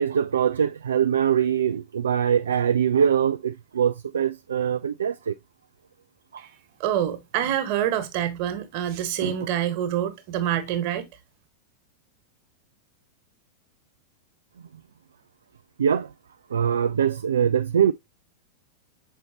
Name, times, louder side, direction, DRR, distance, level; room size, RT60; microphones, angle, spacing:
voice 1, 0.0-5.3 6.3-6.4 9.2-9.3 15.8-16.1 16.5-17.9, right 8 dB, 70° right, 0.3 m, -23 dB
voice 2, 6.8-11.1, right 10 dB, 45° right, 1.5 m, -26 dB
6.3 x 5.5 x 2.8 m
figure-of-eight pair, 90°, 0 cm